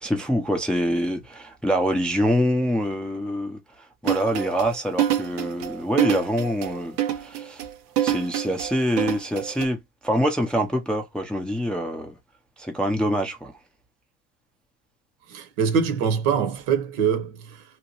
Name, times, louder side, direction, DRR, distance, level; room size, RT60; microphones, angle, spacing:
voice 1, 0.0-3.6 4.0-7.6 8.0-12.2 12.6-13.5, equal, ahead, 0.5 m, -25 dB
sound 1, 4.0-9.7, right 12 dB, 90° right, 0.8 m, -26 dB
voice 2, 15.3-17.6, right 7 dB, 65° right, 1.1 m, -24 dB
2.9 x 2.1 x 2.9 m
hypercardioid pair, 90°, 48 cm